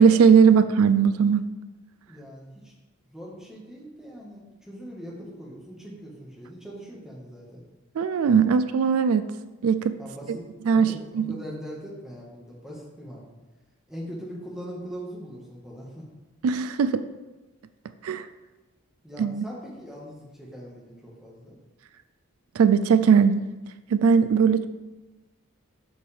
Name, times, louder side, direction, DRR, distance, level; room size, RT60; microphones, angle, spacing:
voice 1, 0.0-1.4 8.0-9.2 9.6-9.9 10.7-11.3 16.4-17.0 18.0-18.2 19.2-19.4 22.6-23.4 23.9-24.7, right 6 dB, 85° right, 11 dB, 0.3 m, -19 dB
voice 2, 2.1-2.7 3.0-7.6 10.0-13.2 13.9-16.0 19.0-21.6, equal, 5° right, -5 dB, 1.5 m, -41 dB
7.2 x 6.2 x 3.5 m, 1.1 s
head